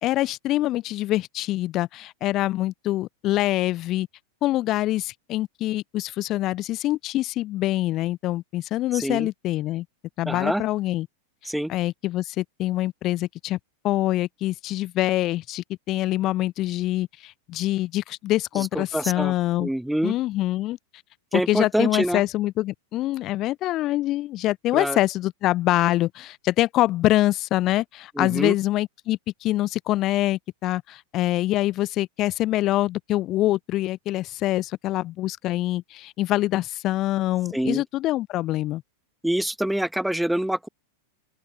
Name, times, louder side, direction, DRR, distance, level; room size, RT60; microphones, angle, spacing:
voice 1, 0.0-4.1 4.4-9.9 10.2-11.1 11.7-13.6 13.8-19.7 20.0-20.8 21.3-38.8, left 15 dB, 35° left, 2.6 m, -25 dB
voice 2, 8.9-9.3 10.2-10.6 11.4-11.7 18.5-19.3 19.6-20.1 21.3-22.2 24.7-25.0 28.1-28.5 37.5-37.8 39.2-40.7, right 1 dB, ahead, 3.3 m, -26 dB
open air
figure-of-eight pair, 90°, 0 cm